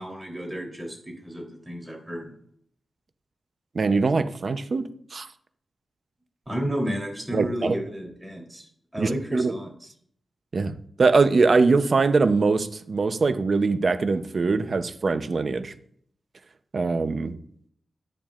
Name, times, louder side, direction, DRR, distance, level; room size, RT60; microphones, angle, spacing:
voice 1, 0.0-2.3 6.5-9.9, equal, 20° right, -1 dB, 3.4 m, -32 dB
voice 2, 3.7-5.3 7.3-7.7 9.0-9.5 10.5-15.7 16.7-17.4, right 4 dB, 55° right, 10 dB, 0.7 m, -22 dB
10.5 x 10.5 x 2.5 m, 0.64 s
wide cardioid pair, 95°, 0 cm